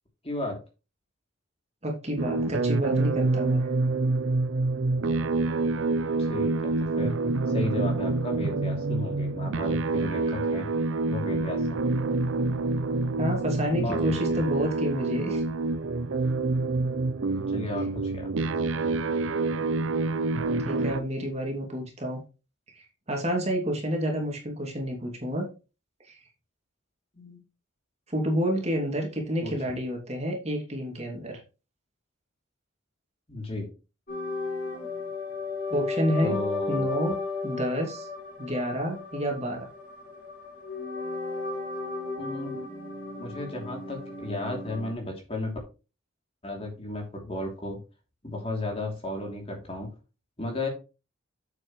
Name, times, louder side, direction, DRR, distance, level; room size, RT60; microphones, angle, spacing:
voice 1, 0.2-0.6 6.2-7.2 7.5-10.7 11.1-11.8 13.8-14.4 17.5-18.3 27.1-27.4 29.4-29.8 33.3-33.7 36.2-36.9 42.2-42.6 43.2-45.6 46.4-47.8 48.2-49.9 50.4-50.7, left 1 dB, 30° left, 1 dB, 3.0 m, -34 dB
voice 2, 1.8-3.6 13.2-15.4 20.6-22.2 22.7-25.5 26.0-26.2 28.1-31.4 35.7-36.4 36.7-37.1 37.4-38.1 38.4-39.7, equal, 30° right, 1 dB, 2.6 m, -29 dB
sound 1, 2.2-21.0, right 3 dB, 75° right, 0.5 m, -27 dB
sound 2, 34.1-44.9, left 3 dB, 45° left, 6.0 m, -34 dB
8.9 x 7.7 x 3.1 m, 0.30 s
head